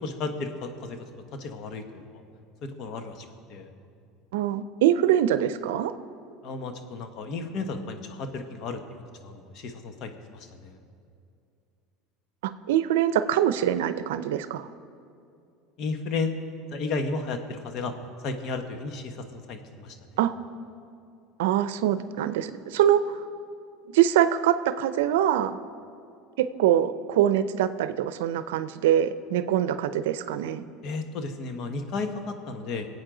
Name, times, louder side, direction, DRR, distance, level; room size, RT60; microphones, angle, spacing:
voice 1, 0.0-1.0 1.4-2.0 2.6-3.7 6.4-10.7 15.8-16.3 16.7-17.9 18.2-19.9 30.8-32.9, left 3 dB, 50° left, 6 dB, 1.3 m, -33 dB
voice 2, 4.3-5.9 12.4-14.6 20.2-20.3 21.4-23.2 23.9-25.6 26.4-30.6, right 11 dB, 85° right, 12 dB, 0.5 m, -24 dB
23.0 x 8.4 x 3.9 m, 2.5 s
supercardioid pair, 120°, 0 cm